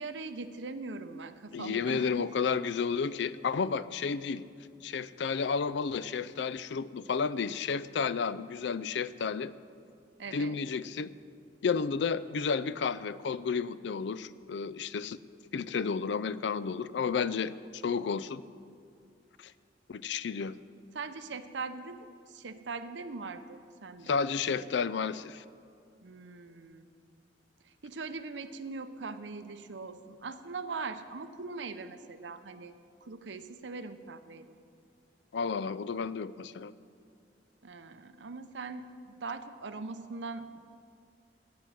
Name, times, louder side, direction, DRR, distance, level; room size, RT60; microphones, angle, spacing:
voice 1, 0.0-2.3 10.2-10.6 20.9-24.1 26.0-26.9 27.6-32.7 33.0-34.6 37.6-40.6, right 4 dB, 85° right, 10 dB, 0.7 m, -41 dB
voice 2, 1.5-4.4 4.8-9.5 10.3-11.1 11.6-15.2 15.5-18.4 19.4-19.5 19.9-20.6 24.1-25.4 35.3-36.7, left 5 dB, 70° left, 15 dB, 0.4 m, -32 dB
13.5 x 6.1 x 9.2 m, 2.4 s
head